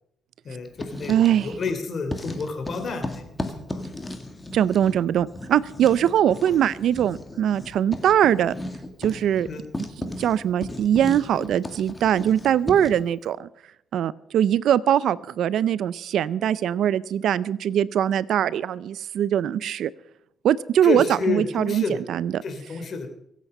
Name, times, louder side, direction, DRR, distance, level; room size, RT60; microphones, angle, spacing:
voice 1, 0.4-3.3 3.7-3.8 9.5-9.6 20.8-22.0 22.4-23.1, left 4 dB, 50° left, 7 dB, 3.1 m, -29 dB
Writing, 0.6-1.8 2.1-13.1, left 1 dB, 20° left, 2.1 m, -36 dB
voice 2, 1.1-1.5 4.5-8.5 9.0-9.5 10.0-13.5 13.9-19.9 20.4-22.4, right 10 dB, 75° right, 19 dB, 0.5 m, -22 dB
23.5 x 8.3 x 5.5 m, 0.78 s
cardioid pair, 90°, 0 cm